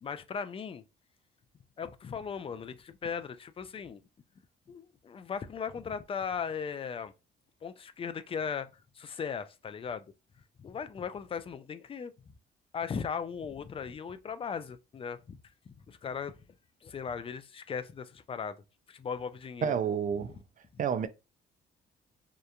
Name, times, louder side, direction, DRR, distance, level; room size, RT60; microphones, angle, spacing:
voice 1, 0.0-0.8 1.8-4.0 4.7-7.1 7.6-8.7 9.0-10.0 10.6-12.1 12.7-15.4 15.9-16.4 16.8-18.6 18.9-19.8, left 6 dB, 30° left, 0.3 m, -37 dB
voice 2, 19.6-20.4 20.8-21.1, right 7 dB, 40° right, 0.4 m, -29 dB
2.9 x 2.1 x 2.4 m
cardioid pair, 90°, 20 cm